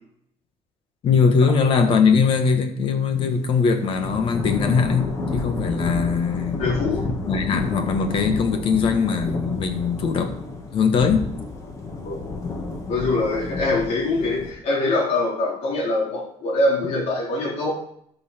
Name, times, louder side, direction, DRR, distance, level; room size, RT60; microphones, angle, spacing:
voice 1, 1.0-6.6 7.3-10.4 10.7-11.3, left 5 dB, 50° left, 7 dB, 1.5 m, -21 dB
Thunder / Rain, 4.0-14.5, left 3 dB, 25° left, 1.9 m, -30 dB
voice 2, 6.6-7.1 12.0-12.2 12.9-17.7, left 2 dB, 65° left, -3 dB, 4.2 m, -23 dB
13.0 x 5.7 x 4.4 m, 0.70 s
cardioid pair, 150°, 12 cm